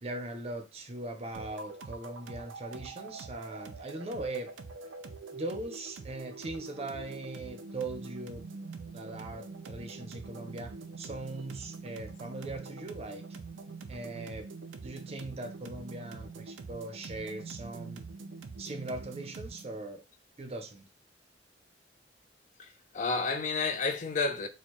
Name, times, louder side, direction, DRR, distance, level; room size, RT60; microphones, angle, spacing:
voice 1, 0.0-4.5 5.3-8.7 8.9-13.2 13.9-14.5 14.8-18.1 18.6-20.0 20.4-20.8, right 2 dB, 35° right, 0.5 m, -40 dB
sound 1, 1.3-19.8, right 4 dB, 85° right, 0.4 m, -45 dB
voice 2, 22.6-24.5, left 4 dB, 40° left, 0.4 m, -31 dB
4.4 x 2.1 x 3.0 m
head